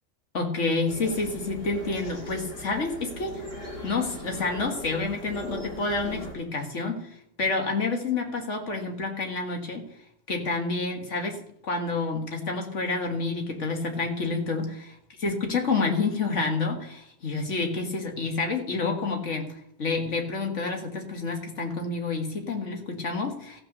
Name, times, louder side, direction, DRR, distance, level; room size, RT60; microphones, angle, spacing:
voice 1, 0.3-3.4 3.8-7.1 7.4-9.9 10.3-19.5 19.8-23.6, left 3 dB, 80° left, 3 dB, 2.1 m, -29 dB
sound 1, 0.9-6.3, equal, 55° left, 4.0 m, -39 dB
14.5 x 5.9 x 6.7 m, 0.73 s
omnidirectional pair, 1.2 m